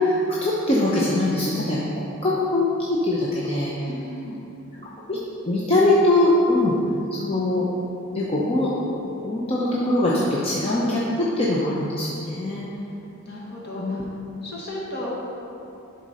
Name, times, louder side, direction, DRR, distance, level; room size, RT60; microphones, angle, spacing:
voice 1, 0.0-3.9 5.1-5.2 5.5-6.7 7.1-7.7 8.1-12.7 13.8-14.0, left 1 dB, 25° left, -6 dB, 0.8 m, -22 dB
voice 2, 3.9-4.4 12.9-13.0 13.2-14.1 14.4-15.1, left 1 dB, 50° left, -5 dB, 1.6 m, -35 dB
11.5 x 4.2 x 4.9 m, 2.9 s
head